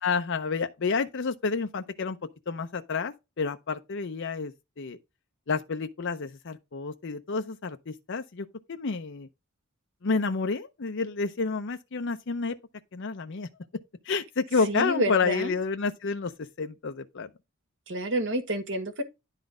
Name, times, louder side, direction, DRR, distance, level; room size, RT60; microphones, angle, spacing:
voice 1, 0.0-2.2 2.5-5.0 5.5-9.3 10.0-12.6 12.9-13.5 14.1-17.3, left 4 dB, 55° left, 0.6 m, -30 dB
voice 2, 14.7-15.5 17.9-19.0, right 1 dB, 60° right, 1.7 m, -29 dB
10.5 x 4.0 x 4.9 m
head